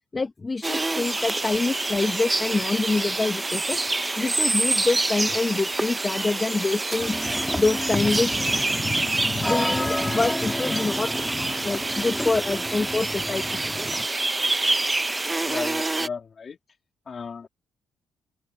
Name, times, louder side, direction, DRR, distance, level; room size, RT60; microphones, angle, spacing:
voice 1, 0.1-3.8 4.2-7.2 7.5-13.6, left 3 dB, 25° left, 1.2 m, -26 dB
sound 1, 0.6-16.1, right 2 dB, 20° right, 0.7 m, -27 dB
sound 2, 7.0-14.1, left 1 dB, 5° left, 1.7 m, -31 dB
voice 2, 15.4-16.6 17.1-17.5, left 5 dB, 45° left, 2.6 m, -35 dB
open air
cardioid pair, 90°, 0 cm